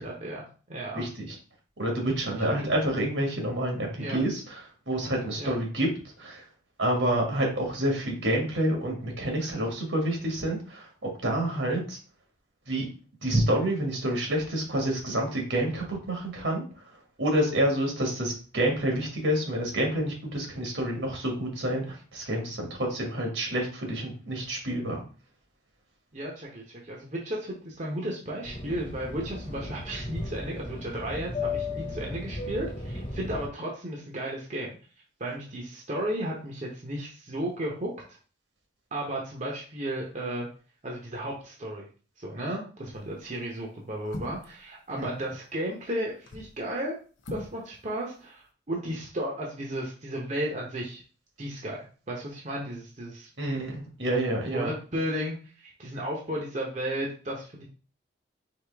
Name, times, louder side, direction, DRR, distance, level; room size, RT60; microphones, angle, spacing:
voice 1, 0.0-1.0 2.5-2.6 4.0-4.2 5.4-5.6 11.4-11.7 26.1-34.7 35.2-38.2 38.9-40.5 40.8-41.9 42.2-46.9 47.3-51.0 51.4-53.3 54.5-57.6, right 1 dB, 40° right, -2 dB, 0.9 m, -34 dB
voice 2, 1.0-1.4 1.8-5.9 6.2-6.4 6.8-12.0 12.7-12.9 13.2-16.9 17.2-25.0 45.0-45.1 53.4-54.7, right 1 dB, 80° right, 0 dB, 1.7 m, -28 dB
Fixed-wing aircraft airplane, 28.4-33.5, left 2 dB, 35° left, 1.3 m, -35 dB
sound 1, 42.9-43.2 44.0-44.6 46.1-46.6 47.2-47.6 47.9-48.0, left 1 dB, 80° left, 0.7 m, -40 dB
4.8 x 2.8 x 3.4 m, 0.37 s
head